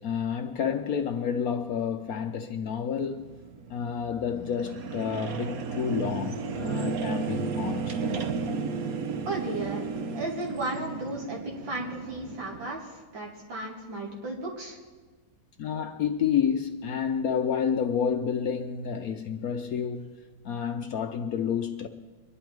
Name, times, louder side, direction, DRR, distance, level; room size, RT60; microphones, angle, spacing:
voice 1, 0.0-3.3 3.7-8.0 15.6-21.9, left 7 dB, 65° left, 0.9 m, -29 dB
sound 1, 3.0-12.7, right 5 dB, 55° right, 1.2 m, -34 dB
voice 2, 9.2-9.8 10.1-14.8, right 2 dB, 80° right, 3.3 m, -34 dB
23.5 x 11.0 x 4.6 m
omnidirectional pair, 2.0 m